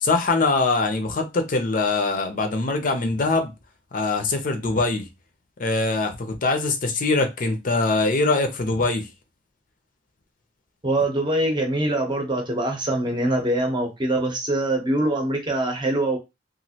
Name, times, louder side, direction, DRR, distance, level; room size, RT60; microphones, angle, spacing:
voice 1, 0.0-3.5 3.9-5.1 5.6-9.1, left 3 dB, 45° left, 0.5 m, -23 dB
voice 2, 10.8-16.2, right 1 dB, 25° right, 0.7 m, -23 dB
3.0 x 2.4 x 2.7 m
head